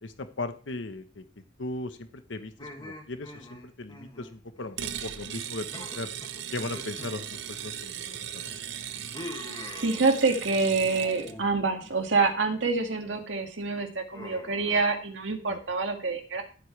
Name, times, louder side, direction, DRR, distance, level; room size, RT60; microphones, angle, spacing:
voice 1, 0.0-1.2 1.6-6.1 6.5-8.5 15.5-15.6, left 2 dB, 85° left, 8 dB, 1.0 m, -38 dB
sound 1, 2.6-5.0 5.3-5.4 5.7-8.1 8.4-10.4 10.8-11.5 11.8-12.3 12.7-13.2 14.1-14.8, left 1 dB, 25° left, 2.0 m, -45 dB
sound 2, 4.8-11.4, right 9 dB, 65° right, 0.8 m, -38 dB
voice 2, 9.8-16.4, right 4 dB, 85° right, 4 dB, 2.1 m, -26 dB
14.5 x 8.3 x 3.3 m, 0.37 s
head